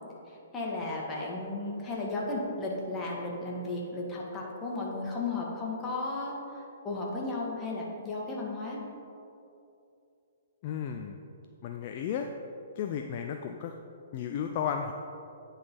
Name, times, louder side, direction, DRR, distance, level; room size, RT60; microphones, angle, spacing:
voice 1, 0.3-8.8, left 2 dB, 15° left, -4 dB, 1.4 m, -34 dB
voice 2, 10.6-11.2 11.6-12.3 12.8-13.8 14.1-14.9, left 8 dB, 40° left, 4 dB, 0.3 m, -33 dB
9.4 x 3.9 x 4.1 m, 2.7 s
figure-of-eight pair, 120°, 0 cm